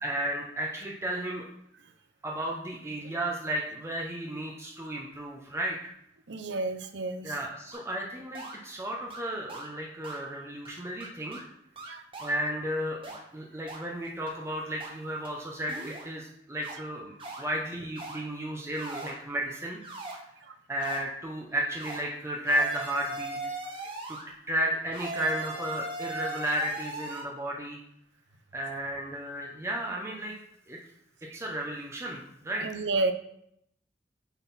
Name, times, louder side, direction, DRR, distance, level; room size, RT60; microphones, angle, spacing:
voice 1, 0.0-1.5 2.2-5.9 7.2-11.4 12.2-13.0 13.3-17.1 17.4-19.8 20.7-23.4 24.1-24.2 24.5-27.8 28.5-30.3 30.7-30.8 31.3-32.7, right 1 dB, 15° right, -2 dB, 0.8 m, -33 dB
voice 2, 6.3-7.4 11.8-12.0 16.5-16.6 20.4-20.5 31.3-31.4 32.6-33.1, right 3 dB, 75° right, 9 dB, 0.6 m, -31 dB
sound 1, 7.7-7.8 8.3-8.6 9.1-9.2 9.5-9.7 10.0-10.2 10.6-10.7 11.0-11.4 11.8-12.4 13.0-13.2 13.7-13.8 14.3-14.4 14.8-14.9 15.2-15.3 15.7-16.1 16.6-16.7 17.2-17.4 17.9-18.2 18.7-19.2 19.8-20.2 20.8-21.0 21.8-22.0 22.4-24.3 24.9-27.2, right 2 dB, 30° right, 1.2 m, -39 dB
8.1 x 4.0 x 4.1 m, 0.74 s
head